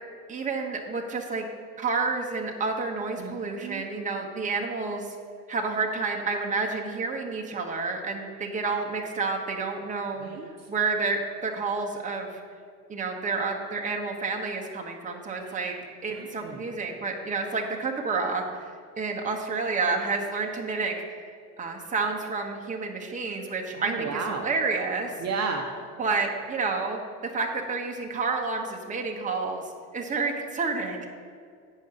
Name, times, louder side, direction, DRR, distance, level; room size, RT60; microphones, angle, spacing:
voice 1, 0.3-1.5 1.8-5.1 5.5-10.3 10.7-12.4 12.9-15.7 16.0-20.9 21.6-25.1 26.0-29.6 29.9-31.0, right 4 dB, 20° right, 1 dB, 1.2 m, -29 dB
voice 2, 3.2-3.8 10.2-10.5 16.1-16.7 23.8-24.5 25.2-25.7, right 5 dB, 40° right, 2 dB, 1.1 m, -33 dB
8.4 x 5.3 x 6.7 m, 2.2 s
hypercardioid pair, 90°, 42 cm